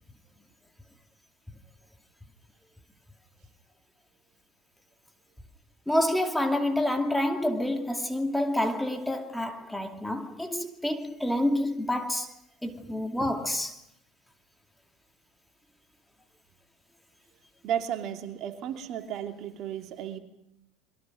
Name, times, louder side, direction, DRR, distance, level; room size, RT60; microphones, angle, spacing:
voice 1, 5.9-12.3 12.6-13.8, left 1 dB, 5° left, 2.5 m, -28 dB
voice 2, 17.6-20.2, right 9 dB, 55° right, 2.8 m, -33 dB
28.5 x 23.0 x 5.2 m
hypercardioid pair, 80°, 0 cm